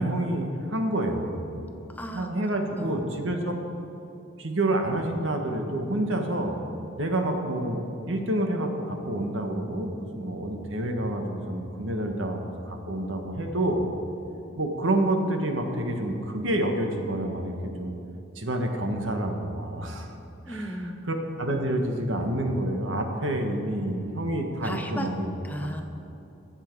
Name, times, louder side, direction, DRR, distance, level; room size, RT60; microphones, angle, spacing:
voice 1, 0.0-1.6 2.1-3.5 4.4-6.5 7.0-12.4 12.7-13.8 14.6-17.9 18.3-20.1 20.5-20.8 21.1-25.3, right 1 dB, 75° right, 3 dB, 1.4 m, -28 dB
voice 2, 1.9-2.3 2.8-3.0 20.5-21.0 24.6-25.1 25.4-25.8, equal, 10° left, 5 dB, 0.6 m, -35 dB
20.0 x 7.7 x 4.7 m, 2.9 s
head